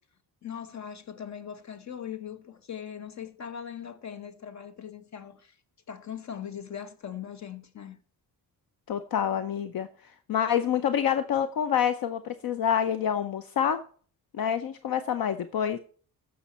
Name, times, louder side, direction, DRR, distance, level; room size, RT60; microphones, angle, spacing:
voice 1, 0.4-5.6 5.9-8.0, left 8 dB, 45° left, 1.1 m, -40 dB
voice 2, 8.9-9.9 10.3-13.8 14.3-15.8, left 9 dB, 65° left, 0.8 m, -27 dB
15.5 x 6.3 x 4.3 m
wide cardioid pair, 150°, 39 cm